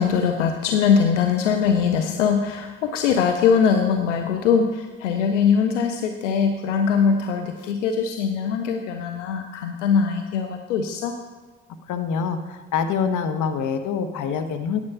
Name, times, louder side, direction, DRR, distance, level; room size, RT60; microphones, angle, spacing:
voice 1, 0.0-11.2, left 6 dB, 85° left, 6 dB, 0.6 m, -21 dB
voice 2, 11.9-14.8, left 6 dB, 60° left, 8 dB, 1.0 m, -25 dB
9.7 x 6.7 x 5.6 m, 1.3 s
hypercardioid pair, 45°, 36 cm